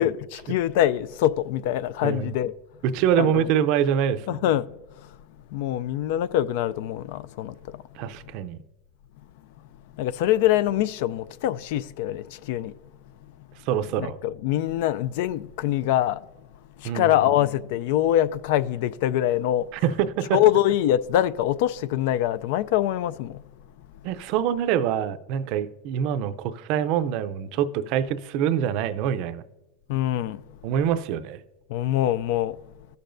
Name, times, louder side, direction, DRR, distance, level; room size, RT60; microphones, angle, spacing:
voice 1, 0.0-2.5 3.2-3.5 4.3-4.7 5.0-5.1 5.5-7.8 10.0-12.7 14.0-16.3 16.8-19.7 20.3-23.4 29.9-30.4 31.7-32.6, left 12 dB, 65° left, 0.3 m, -24 dB
voice 2, 2.8-4.4 8.0-8.6 13.7-14.2 16.8-17.3 19.8-20.4 24.0-29.4 30.6-31.4, right 9 dB, 50° right, 0.5 m, -25 dB
14.0 x 6.7 x 2.6 m
supercardioid pair, 145°, 0 cm